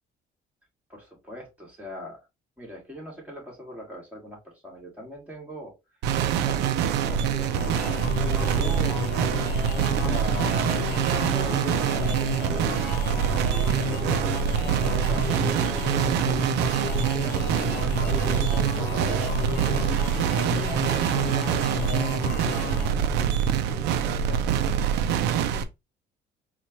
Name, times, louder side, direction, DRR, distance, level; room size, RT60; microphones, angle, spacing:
voice 1, 0.9-2.3 2.6-5.7 6.3-9.0 9.9-16.3 17.2-19.8 20.0-24.8, equal, 10° right, -2 dB, 2.4 m, -41 dB
sound 1, 6.0-25.6, right 8 dB, 90° right, 0.5 m, -25 dB
sound 2, 7.2-23.0, left 4 dB, 85° left, 0.9 m, -33 dB
4.2 x 2.5 x 2.8 m, 0.23 s
cardioid pair, 110°, 17 cm